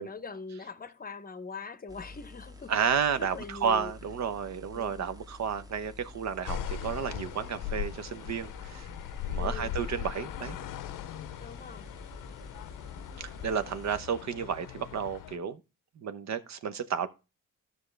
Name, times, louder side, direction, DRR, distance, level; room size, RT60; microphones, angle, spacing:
voice 1, 0.0-3.9 4.7-5.1 9.4-9.8 11.4-11.9, left 4 dB, 30° left, 0.8 m, -42 dB
sound 1, 1.9-14.0, left 2 dB, 10° right, 0.9 m, -49 dB
voice 2, 2.7-8.9 9.2-10.6 13.2-15.6 16.0-17.1, right 7 dB, 60° right, 0.9 m, -32 dB
sound 2, 6.5-15.4, left 9 dB, 80° left, 0.6 m, -39 dB
12.0 x 6.4 x 3.3 m
cardioid pair, 115°, 32 cm